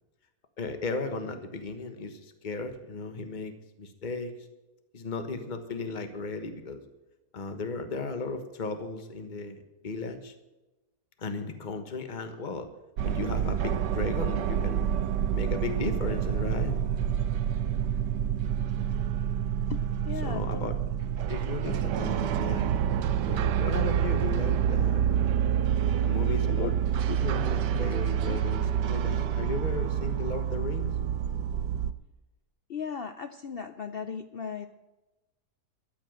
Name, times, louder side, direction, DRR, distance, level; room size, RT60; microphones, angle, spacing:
voice 1, 0.6-4.3 4.9-6.8 7.3-10.3 11.2-12.7 13.0-16.8 20.2-20.7 21.3-22.8 23.3-25.3 26.0-26.7 27.2-30.9, left 3 dB, 30° left, 7 dB, 1.3 m, -35 dB
sound 1, 13.0-31.9, right 9 dB, 90° right, 1.3 m, -28 dB
voice 2, 19.7-20.7 26.5-26.7 27.1-27.2 27.7-27.8 28.3-28.4 32.7-34.7, left 7 dB, 80° left, 9 dB, 0.5 m, -36 dB
13.0 x 8.1 x 7.7 m, 1.1 s
omnidirectional pair, 1.8 m